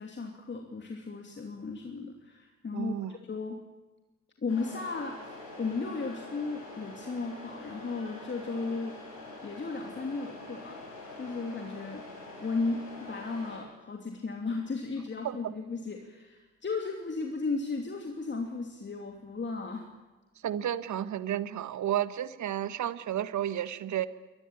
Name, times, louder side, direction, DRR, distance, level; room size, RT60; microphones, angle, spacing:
voice 1, 0.0-3.6 4.4-9.0 9.4-10.8 11.2-12.1 12.4-19.9, left 4 dB, 30° left, 3 dB, 2.9 m, -35 dB
voice 2, 2.7-3.2 15.2-15.5 20.3-24.1, right 11 dB, 45° right, 14 dB, 1.5 m, -32 dB
Truck, 4.5-13.6, left 2 dB, 85° left, 7.0 m, -45 dB
23.5 x 20.0 x 8.9 m, 1.2 s
figure-of-eight pair, 50°, 39 cm